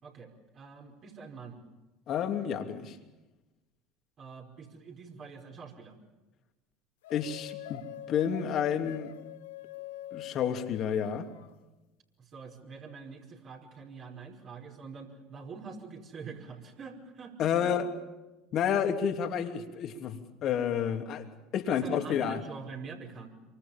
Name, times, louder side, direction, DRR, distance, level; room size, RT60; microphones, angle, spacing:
voice 1, 0.0-1.6 4.2-6.0 12.2-17.7 21.5-23.3, right 5 dB, 45° right, 5.2 m, -45 dB
voice 2, 2.1-3.0 7.1-7.8 8.1-9.1 10.1-11.3 17.4-17.9 18.5-22.4, left 8 dB, 50° left, 3.0 m, -30 dB
sound 1, 7.0-11.5, left 13 dB, 75° left, 0.9 m, -45 dB
27.5 x 25.0 x 7.3 m
hypercardioid pair, 70°, 0 cm